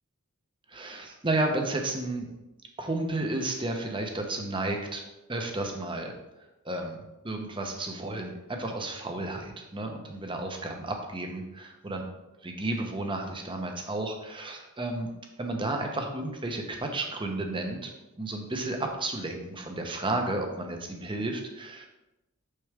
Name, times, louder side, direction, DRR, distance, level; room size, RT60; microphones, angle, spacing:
voice 1, 0.7-2.3 2.8-5.0 5.3-6.1 6.4-12.0 12.4-15.1 15.4-17.9 18.2-21.9, right 2 dB, 25° right, 3 dB, 0.9 m, -32 dB
6.6 x 6.2 x 3.5 m, 0.97 s
head